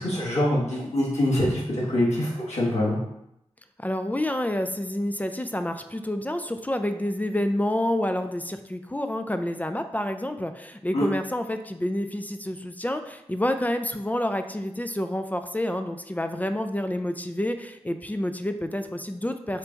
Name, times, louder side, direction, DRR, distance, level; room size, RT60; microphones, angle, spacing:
voice 1, 0.0-3.0 10.9-11.1, left 1 dB, 75° left, -6 dB, 1.5 m, -24 dB
voice 2, 3.8-19.6, left 1 dB, 15° left, 8 dB, 0.3 m, -28 dB
4.4 x 2.3 x 3.9 m, 0.83 s
cardioid pair, 50°, 12 cm